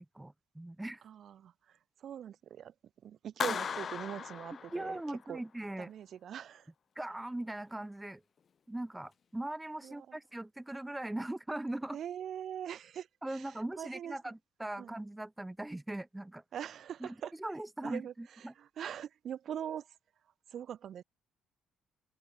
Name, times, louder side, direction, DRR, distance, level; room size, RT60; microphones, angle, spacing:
voice 1, 0.1-1.0 3.5-3.6 4.7-5.9 7.0-8.2 8.7-12.0 13.2-16.4 17.0-17.1 17.4-18.5, right 1 dB, 10° right, 0.8 m, -40 dB
voice 2, 1.0-2.7 3.0-5.0 5.3-5.4 5.8-6.7 9.8-10.2 11.9-14.2 14.8-15.0 16.5-17.3 17.8-20.0 20.5-21.0, right 9 dB, 55° right, 1.2 m, -42 dB
Clapping, 3.4-5.3, left 7 dB, 45° left, 0.4 m, -37 dB
open air
hypercardioid pair, 50°, 0 cm